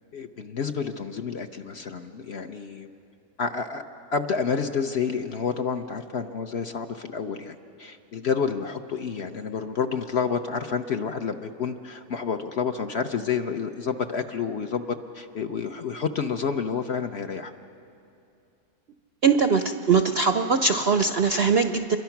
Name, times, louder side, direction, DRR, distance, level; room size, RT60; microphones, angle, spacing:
voice 1, 0.1-2.9 3.4-3.8 4.1-17.5, left 6 dB, 55° left, 6 dB, 0.8 m, -29 dB
voice 2, 19.2-22.0, right 5 dB, 60° right, 8 dB, 0.6 m, -21 dB
27.5 x 23.0 x 5.9 m, 2.6 s
omnidirectional pair, 1.7 m